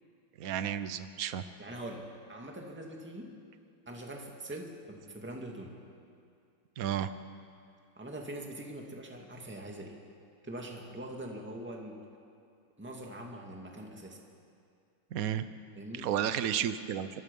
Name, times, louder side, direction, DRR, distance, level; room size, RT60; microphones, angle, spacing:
voice 1, 0.4-1.4 6.8-7.1 15.1-15.4 16.0-17.1, right 10 dB, 60° right, 12 dB, 0.9 m, -32 dB
voice 2, 1.6-3.4 3.9-5.8 8.0-10.0 10.4-12.0 12.8-14.2 15.7-16.1, right 1 dB, 5° right, 1 dB, 2.0 m, -43 dB
24.5 x 23.0 x 5.4 m, 2.4 s
omnidirectional pair, 2.4 m